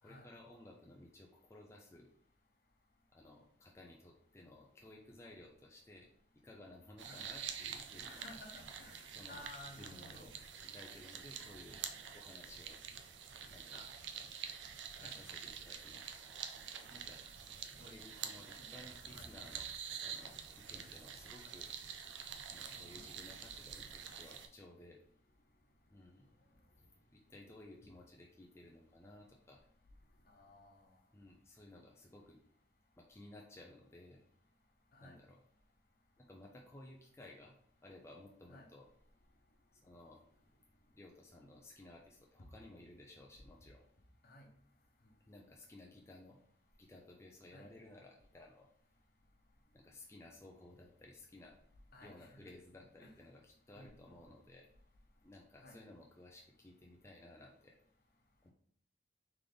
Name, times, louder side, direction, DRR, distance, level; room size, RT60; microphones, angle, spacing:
voice 1, 0.0-2.1 3.1-6.1 6.4-8.3 9.1-9.5 9.8-10.3 10.6-11.8 12.1-12.8 13.5-13.9 15.0-16.3 16.9-17.2 17.8-20.3 20.7-21.7 22.5-25.0 25.9-26.2 27.1-29.6 31.1-32.4 33.0-34.2 35.0-35.4 36.2-37.5 37.8-38.9 39.8-40.2 40.9-43.9 45.3-46.4 46.8-48.7 49.7-51.6 52.0-54.7 55.2-57.7 58.4-58.5, left 1 dB, 15° left, -2 dB, 0.5 m, -57 dB
sound 1, 7.0-24.5, right 7 dB, 75° right, 0.5 m, -47 dB
voice 2, 8.1-9.0 9.3-10.3 13.7-13.9 15.0-15.2 17.8-18.0 18.4-18.7 19.1-19.5 21.4-21.5 22.7-23.0 30.3-30.9 34.9-35.2 38.5-38.7 44.2-44.5 47.5-47.7 51.9-52.4 53.0-53.1 53.8-53.9 55.6-55.8, left 1 dB, 55° left, 0 dB, 1.0 m, -55 dB
3.4 x 3.4 x 3.8 m, 0.62 s
head